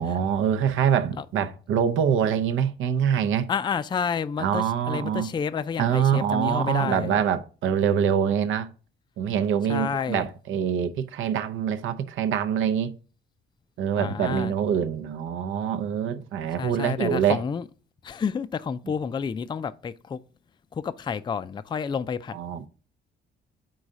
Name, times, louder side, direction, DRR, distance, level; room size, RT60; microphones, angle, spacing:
voice 1, 0.0-3.5 4.4-5.3 5.8-8.7 9.2-12.9 13.8-17.4 22.3-22.6, right 8 dB, 80° right, 0.6 m, -25 dB
voice 2, 3.5-7.2 9.7-10.2 14.0-14.5 16.6-17.6 18.0-20.2 20.8-22.4, left 6 dB, 25° left, 0.3 m, -29 dB
4.8 x 3.8 x 5.3 m
cardioid pair, 90°, 20 cm